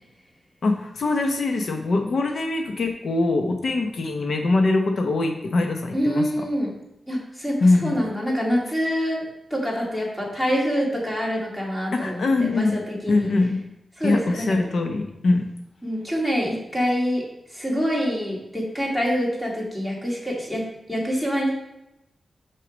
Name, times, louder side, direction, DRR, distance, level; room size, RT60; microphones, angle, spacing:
voice 1, 0.6-6.5 7.6-8.0 11.9-12.8 13.1-13.6 14.0-15.5, left 2 dB, 70° left, 4 dB, 0.8 m, -22 dB
voice 2, 5.9-6.7 7.1-7.6 7.8-9.2 9.5-13.3 14.0-14.5 15.8-17.2 17.5-21.5, equal, 10° left, -3 dB, 2.2 m, -25 dB
6.0 x 4.6 x 6.2 m, 0.89 s
wide cardioid pair, 125°, 0 cm